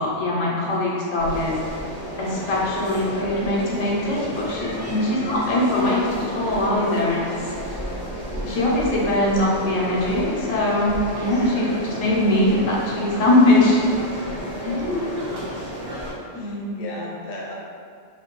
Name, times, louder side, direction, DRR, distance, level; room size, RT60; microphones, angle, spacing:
voice 1, 0.0-1.5 2.2-7.2 8.4-13.8 16.3-16.7, left 1 dB, 90° left, -4 dB, 1.0 m, -21 dB
sound 1, 1.2-16.1, equal, 30° right, 0.4 m, -32 dB
voice 2, 14.6-15.2 16.3-17.5, left 2 dB, 60° left, -4 dB, 0.6 m, -31 dB
2.6 x 2.1 x 2.9 m, 2.2 s
omnidirectional pair, 1.3 m